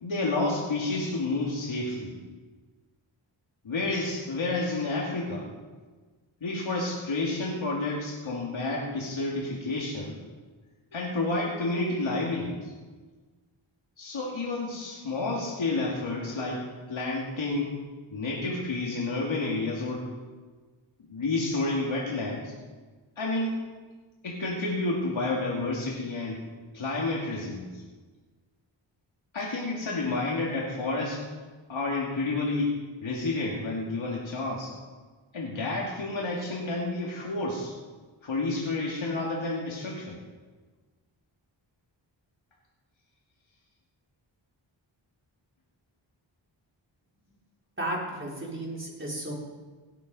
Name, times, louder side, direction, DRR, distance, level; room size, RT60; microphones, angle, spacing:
voice 1, 0.0-2.1 3.6-5.5 6.4-10.2 10.9-12.7 14.0-16.6 16.9-17.7 18.1-20.1 21.1-22.5 23.2-23.6 24.2-26.4 26.7-27.8 29.3-31.2 31.7-32.8 33.0-34.7 35.3-37.7 38.2-40.2, left 2 dB, 75° left, -3 dB, 2.5 m, -30 dB
voice 2, 47.8-49.3, right 1 dB, 25° right, -4 dB, 4.4 m, -33 dB
17.5 x 9.2 x 5.5 m, 1.4 s
wide cardioid pair, 70°, 47 cm